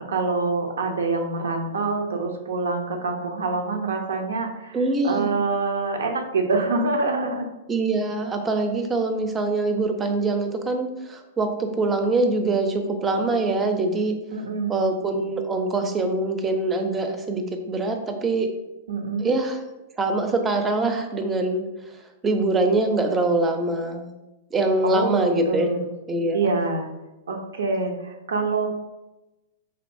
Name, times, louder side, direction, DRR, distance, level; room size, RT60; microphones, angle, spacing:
voice 1, 0.1-4.8 5.0-7.5 14.3-14.9 18.9-19.3 24.8-25.9 26.3-26.9 27.3-28.7, right 3 dB, 75° right, 4 dB, 0.6 m, -25 dB
voice 2, 4.7-5.4 7.7-14.1 14.7-18.5 19.2-19.6 20.0-21.6 22.2-24.1 24.5-25.7 26.1-26.5, right 2 dB, 20° right, 5 dB, 0.5 m, -24 dB
4.3 x 2.8 x 2.6 m, 1.0 s
hypercardioid pair, 110°, 0 cm